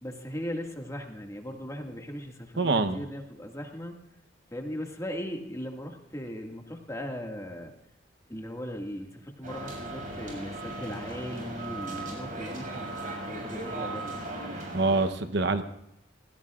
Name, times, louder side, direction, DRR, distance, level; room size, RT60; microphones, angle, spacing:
voice 1, 0.0-4.0 4.5-7.7 8.3-14.3, equal, 15° left, 2 dB, 2.0 m, -38 dB
voice 2, 2.6-3.0 14.7-15.6, right 3 dB, 70° right, 9 dB, 1.0 m, -25 dB
sound 1, 9.4-15.1, right 2 dB, 50° right, 6.7 m, -37 dB
29.0 x 16.5 x 2.5 m, 0.81 s
head